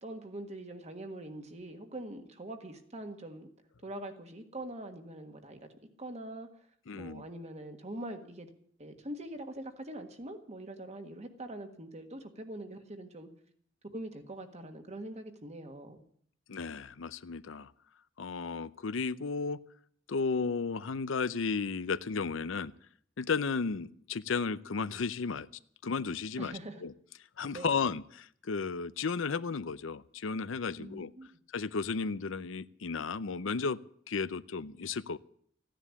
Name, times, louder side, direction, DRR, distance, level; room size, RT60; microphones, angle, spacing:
voice 1, 0.0-3.5 3.8-5.7 6.0-6.5 6.9-8.5 8.8-13.3 13.9-16.0 26.4-26.8 27.5-27.8 30.8-31.3, right 1 dB, 35° right, 6 dB, 1.6 m, -43 dB
voice 2, 6.9-7.2 16.5-17.7 18.2-19.6 20.1-22.7 23.2-25.5 25.8-26.9 27.4-31.1 31.5-33.8 34.1-35.2, left 5 dB, 90° left, 16 dB, 0.6 m, -34 dB
14.5 x 10.5 x 8.3 m, 0.63 s
head